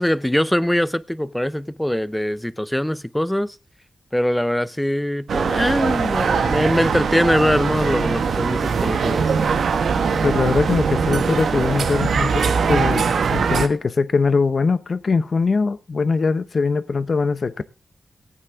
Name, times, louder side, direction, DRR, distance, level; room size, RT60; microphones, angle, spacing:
voice 1, 0.0-3.6 4.1-9.2, equal, 5° left, 0.6 m, -22 dB
sound 1, 5.3-13.7, right 5 dB, 90° right, 1.4 m, -21 dB
voice 2, 10.2-17.6, left 4 dB, 50° left, 0.8 m, -21 dB
17.5 x 9.7 x 3.6 m
wide cardioid pair, 105°, 0 cm